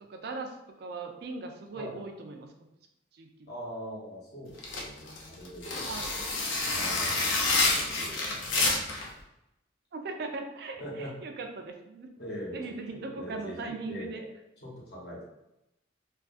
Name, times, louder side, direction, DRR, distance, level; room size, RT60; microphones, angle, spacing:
voice 1, 0.1-2.5 3.1-3.5 5.9-6.1 9.9-12.1 12.5-14.3, right 3 dB, 55° right, 4 dB, 0.3 m, -39 dB
voice 2, 3.5-5.8 6.7-8.9 10.8-11.1 12.2-14.1 14.6-15.2, equal, 55° left, -4 dB, 0.8 m, -42 dB
sound 1, 4.6-9.1, left 3 dB, 80° left, 0.5 m, -28 dB
2.5 x 2.4 x 2.4 m, 0.89 s
head